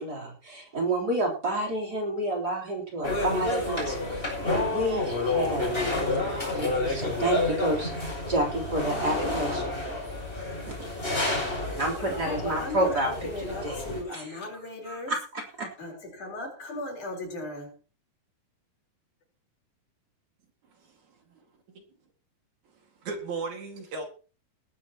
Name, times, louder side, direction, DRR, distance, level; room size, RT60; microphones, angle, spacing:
voice 1, 0.0-4.3 4.7-9.6 10.6-10.8 11.8-13.1 13.6-13.8 14.1-14.3 14.9-15.2 15.6-15.7, right 1 dB, 30° right, 1 dB, 4.1 m, -30 dB
sound 1, 3.0-14.0, left 2 dB, 15° left, 7.8 m, -30 dB
voice 2, 5.6-7.3 9.2-9.9 11.2-15.1 15.8-17.7, left 1 dB, 65° left, 1 dB, 5.7 m, -38 dB
voice 3, 20.7-21.4 21.7-21.8 23.0-24.1, right 4 dB, 60° right, 4 dB, 3.4 m, -37 dB
19.0 x 12.5 x 3.0 m, 0.36 s
omnidirectional pair, 3.8 m